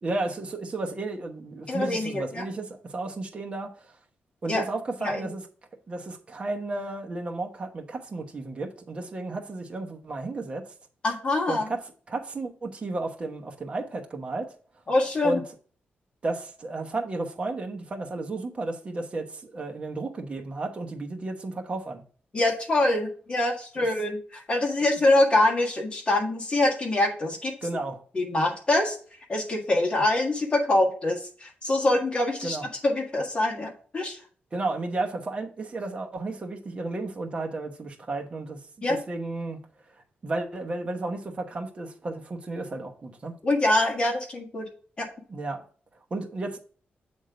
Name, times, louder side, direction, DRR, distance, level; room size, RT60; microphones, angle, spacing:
voice 1, 0.0-4.0 4.4-5.5 5.9-10.7 11.5-14.5 15.2-15.4 16.2-22.0 23.8-23.9 27.6-28.0 32.4-32.7 34.5-38.6 38.9-39.6 40.2-43.4 45.3-45.6 46.1-46.6, right 2 dB, 30° right, 1.0 m, -33 dB
voice 2, 1.7-2.4 4.5-4.6 5.0-5.3 11.0-11.7 14.9-15.4 22.3-27.8 28.1-29.0 29.3-32.6 32.8-34.2 38.8-39.0 43.4-44.7 45.0-45.1, left 2 dB, 30° left, 1.7 m, -24 dB
7.8 x 3.7 x 5.0 m
wide cardioid pair, 140°, 4 cm